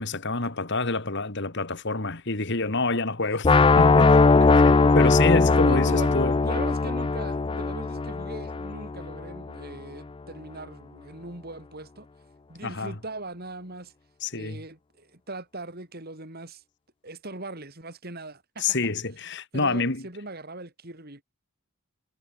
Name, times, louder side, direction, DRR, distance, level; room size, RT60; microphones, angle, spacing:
voice 1, 0.0-4.2 4.6-6.3 12.6-13.0 14.2-14.6 18.6-20.1, left 3 dB, 55° left, 2.6 m, -27 dB
sound 1, 3.4-9.4, left 3 dB, 25° left, 0.4 m, -20 dB
voice 2, 5.6-12.1 12.5-13.9 14.3-16.6 17.0-18.8 19.5-21.2, right 2 dB, 45° right, 4.3 m, -40 dB
head